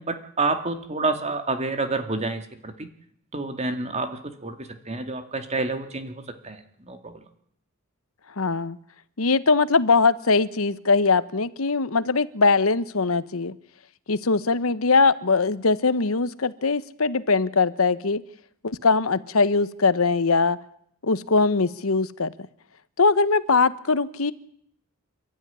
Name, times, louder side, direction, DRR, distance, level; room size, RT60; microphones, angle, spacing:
voice 1, 0.0-2.9 3.3-7.2, right 3 dB, 30° right, 7 dB, 2.3 m, -29 dB
voice 2, 8.4-8.8 9.2-13.5 14.1-18.2 18.6-20.6 21.0-22.3 23.0-24.3, left 4 dB, 80° left, 15 dB, 1.1 m, -21 dB
28.5 x 13.0 x 9.9 m, 0.69 s
head